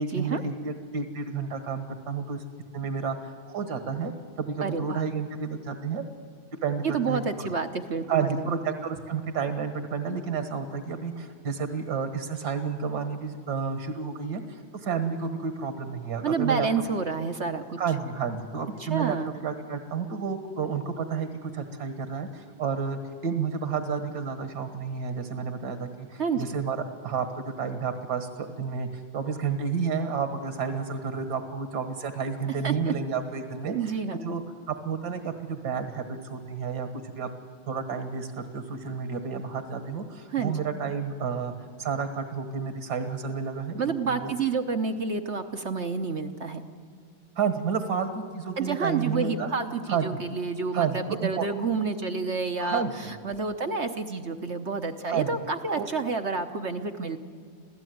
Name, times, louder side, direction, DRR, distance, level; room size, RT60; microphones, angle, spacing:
voice 1, 0.0-2.4 2.7-4.1 4.4-6.0 6.6-7.2 8.1-16.7 17.8-19.2 19.4-26.8 27.0-33.9 34.2-34.4 34.7-37.3 37.7-44.3 47.4-49.5 49.9-50.2 50.7-51.5 52.6-52.9 55.1-55.3 55.7-55.9, right 6 dB, 60° right, 8 dB, 2.1 m, -31 dB
voice 2, 4.6-5.0 6.8-8.5 16.2-17.8 18.8-19.3 26.2-26.6 32.6-32.9 33.7-34.2 40.3-40.6 43.8-46.6 48.6-57.2, right 5 dB, 45° right, 7 dB, 1.1 m, -29 dB
26.5 x 16.0 x 9.3 m, 2.2 s
omnidirectional pair, 2.1 m